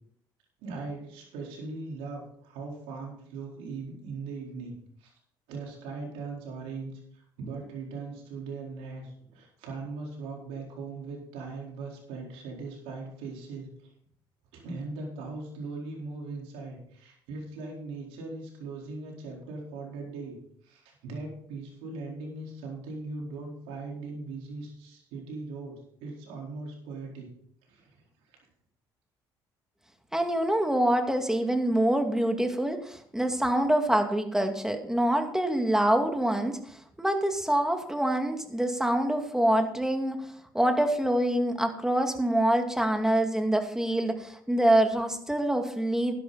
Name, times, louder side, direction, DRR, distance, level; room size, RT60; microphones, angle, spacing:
voice 1, 0.6-5.1 5.5-13.7 14.5-20.4 20.6-25.8 26.0-27.3 27.7-27.9 28.3-28.4, right 3 dB, 85° right, -1 dB, 4.3 m, -39 dB
voice 2, 30.1-40.2 40.5-46.1, right 1 dB, 5° right, 5 dB, 2.3 m, -25 dB
11.5 x 11.0 x 4.2 m, 0.66 s
supercardioid pair, 65°, 10 cm